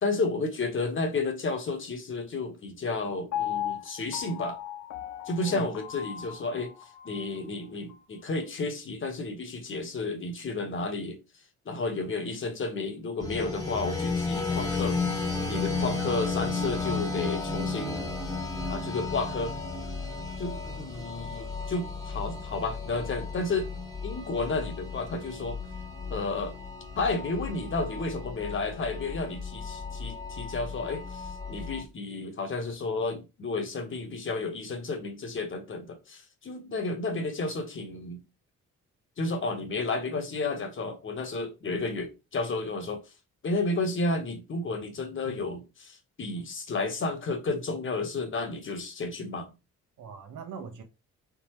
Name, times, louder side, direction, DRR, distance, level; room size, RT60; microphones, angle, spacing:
voice 1, 0.0-4.6 5.3-6.7 7.0-11.2 11.7-15.0 15.5-18.1 18.7-19.6 20.4-23.7 24.0-25.6 26.1-26.6 27.0-38.2 39.2-43.0 43.4-49.5, left 3 dB, 40° left, 1.2 m, -32 dB
Piano, 3.3-7.4 7.9-8.0, left 11 dB, 70° left, 0.6 m, -36 dB
sound 1, 13.2-31.8, left 3 dB, 10° left, 1.2 m, -34 dB
voice 2, 15.3-15.8 50.0-50.8, right 6 dB, 80° right, 1.1 m, -41 dB
3.8 x 3.6 x 3.1 m
cardioid pair, 90°, 30 cm